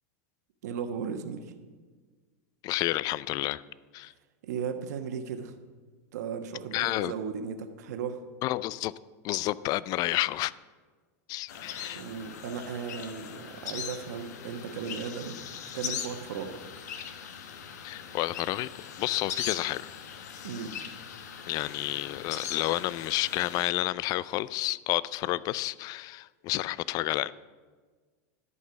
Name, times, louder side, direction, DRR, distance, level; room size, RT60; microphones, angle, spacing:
voice 1, 0.6-1.5 4.4-5.5 6.1-8.2 11.9-15.4 15.7-16.6 20.4-20.7, right 6 dB, 75° right, 7 dB, 1.2 m, -36 dB
voice 2, 2.6-3.6 3.9-4.1 6.7-7.1 8.4-8.9 9.2-10.5 11.3-12.0 17.8-18.7 19.0-19.9 21.5-27.3, left 17 dB, 45° left, 19 dB, 0.4 m, -30 dB
sound 1, 11.5-23.7, left 8 dB, 75° left, 1.1 m, -40 dB
12.5 x 5.5 x 7.9 m, 1.4 s
hypercardioid pair, 115°, 9 cm